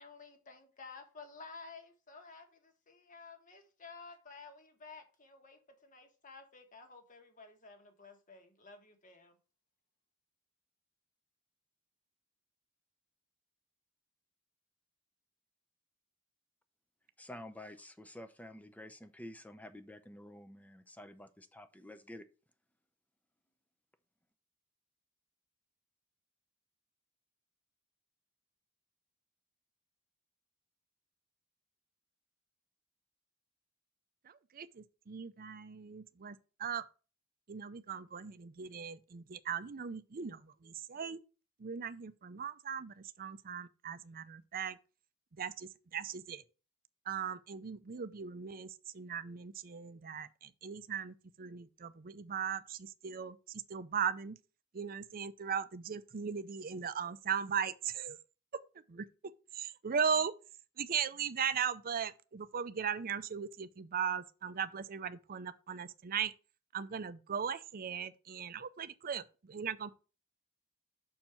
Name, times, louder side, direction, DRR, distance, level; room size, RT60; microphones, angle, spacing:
voice 1, 0.0-9.4, left 4 dB, 40° left, 1.5 m, -53 dB
voice 2, 17.2-22.3, left 1 dB, 5° left, 0.6 m, -50 dB
voice 3, 34.2-36.8 37.5-41.2 41.6-44.8 45.3-46.4 47.1-54.4 54.7-58.2 58.9-59.1 59.5-60.3 60.8-66.3 66.7-69.9, right 7 dB, 45° right, 0.5 m, -38 dB
6.4 x 4.5 x 5.6 m
head